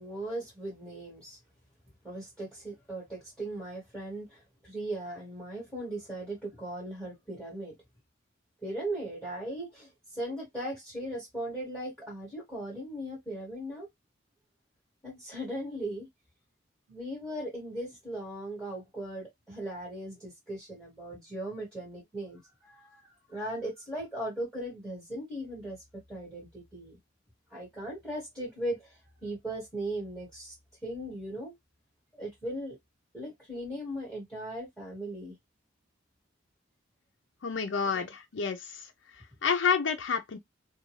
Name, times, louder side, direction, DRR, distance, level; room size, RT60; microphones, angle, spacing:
voice 1, 0.0-1.4 2.0-7.7 8.6-13.9 15.0-16.1 16.9-23.0 23.3-25.8 26.1-27.0 27.5-30.5 30.8-31.5 32.2-32.8 33.1-35.4 37.8-38.1, right 1 dB, 5° left, 1.6 m, -38 dB
voice 2, 37.4-38.8 39.4-40.4, left 6 dB, 70° left, 0.5 m, -29 dB
2.6 x 2.3 x 3.0 m
head